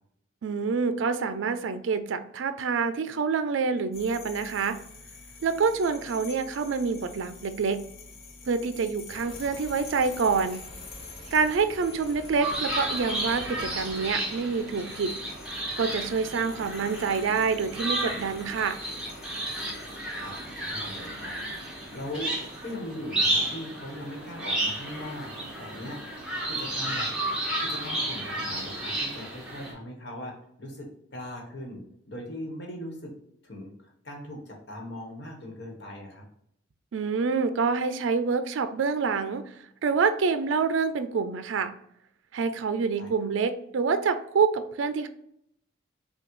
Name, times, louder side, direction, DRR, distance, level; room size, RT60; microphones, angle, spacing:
voice 1, 0.4-4.8 5.4-7.8 8.5-10.6 11.3-15.1 15.8-18.8 36.9-39.5 39.8-41.7 42.3-45.1, right 5 dB, 75° right, 10 dB, 0.4 m, -27 dB
sound 1, 3.9-22.8, left 4 dB, 90° left, 0.8 m, -48 dB
sound 2, 9.1-14.2, right 1 dB, 30° right, 0.7 m, -47 dB
sound 3, 12.4-29.7, right 1 dB, 5° right, 1.0 m, -32 dB
voice 2, 20.2-21.3 21.9-25.3 25.6-26.0 26.5-27.1 27.6-33.1 33.4-36.2 43.0-43.3, left 1 dB, 60° left, 0 dB, 1.2 m, -40 dB
5.8 x 2.3 x 3.0 m, 0.73 s
head